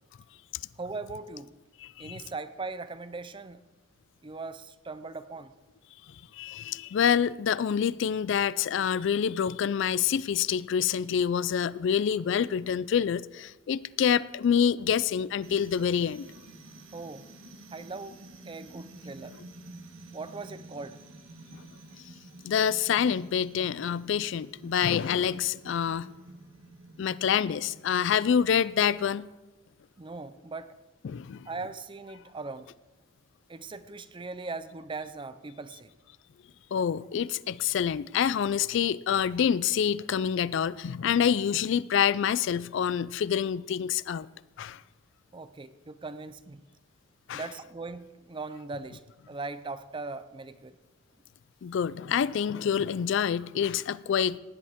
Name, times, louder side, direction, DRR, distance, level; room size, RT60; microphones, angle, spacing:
voice 1, 0.8-1.5 2.0-3.6 4.2-5.5 16.9-17.3 17.7-18.2 18.4-19.3 20.1-21.0 30.0-30.8 31.4-32.7 33.5-35.9 45.3-46.6 47.3-49.0 49.3-50.8, right 3 dB, 25° right, 0.5 m, -39 dB
voice 2, 1.8-2.2 6.3-16.3 21.5-21.6 22.4-26.1 27.0-29.3 31.0-31.5 36.7-44.3 44.6-44.8 47.3-47.4 51.6-54.4, left 8 dB, 60° left, 0.3 m, -27 dB
sound 1, 15.4-28.7, right 2 dB, 80° right, 1.4 m, -50 dB
16.5 x 11.0 x 3.6 m
head